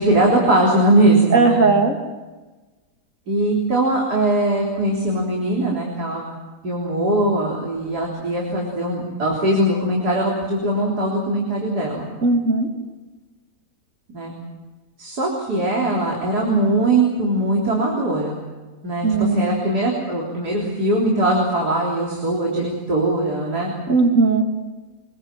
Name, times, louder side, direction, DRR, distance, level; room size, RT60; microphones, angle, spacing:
voice 1, 0.0-1.6 3.3-6.2 6.6-12.1 14.1-14.3 15.0-18.4 18.8-23.7, right 1 dB, 90° right, -2 dB, 4.2 m, -20 dB
voice 2, 1.3-2.0 12.2-12.7 19.0-19.5 23.9-24.4, right 4 dB, 55° right, 3 dB, 3.0 m, -17 dB
24.5 x 21.5 x 7.6 m, 1.2 s
omnidirectional pair, 1.6 m